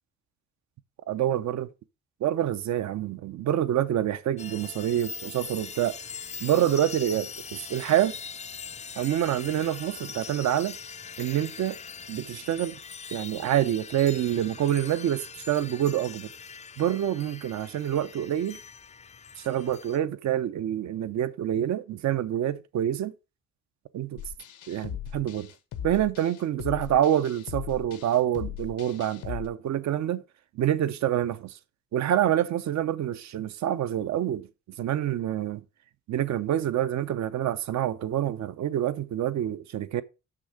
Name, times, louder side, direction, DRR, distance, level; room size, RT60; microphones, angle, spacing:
voice 1, 1.1-1.7 2.2-6.0 6.4-8.1 9.0-10.8 11.2-11.8 12.1-12.8 13.1-16.3 16.8-18.6 19.4-23.1 23.9-24.2 24.7-25.5 25.8-30.2 30.5-31.6 31.9-34.5 34.8-35.6 36.1-40.0, right 11 dB, 65° right, 0.7 m, -27 dB
sound 1, 4.4-20.0, left 6 dB, 25° left, 0.4 m, -42 dB
sound 2, 24.2-29.5, left 10 dB, 85° left, 1.0 m, -39 dB
6.4 x 6.2 x 5.0 m
cardioid pair, 90°, 30 cm